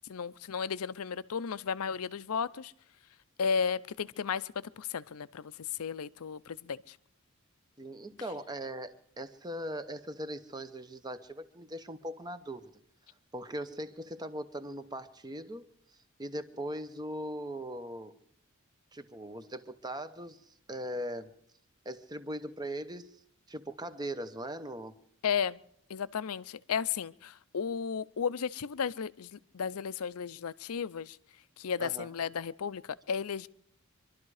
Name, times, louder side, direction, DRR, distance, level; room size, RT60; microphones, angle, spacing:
voice 1, 0.1-2.7 3.4-7.0 25.2-25.6 25.9-31.2 31.6-33.5, left 6 dB, 80° left, 16 dB, 0.5 m, -34 dB
voice 2, 7.8-12.7 13.3-18.2 18.9-21.3 21.8-23.2 23.5-24.9 31.8-32.1, right 1 dB, 20° right, 11 dB, 0.8 m, -40 dB
24.0 x 12.0 x 4.8 m, 0.68 s
head